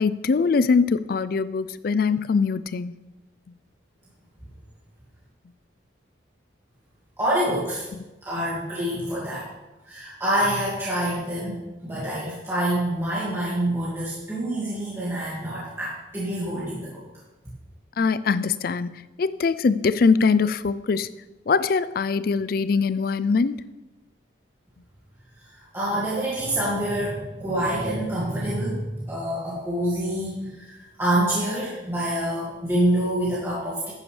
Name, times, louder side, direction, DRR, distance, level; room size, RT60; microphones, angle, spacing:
voice 1, 0.0-2.9 18.0-21.1 21.5-23.7, left 5 dB, 50° left, 16 dB, 0.4 m, -22 dB
voice 2, 7.2-7.9 8.2-9.5 9.8-17.0 25.4-33.9, right 1 dB, 15° right, -8 dB, 2.0 m, -26 dB
11.0 x 9.6 x 3.2 m, 1.1 s
head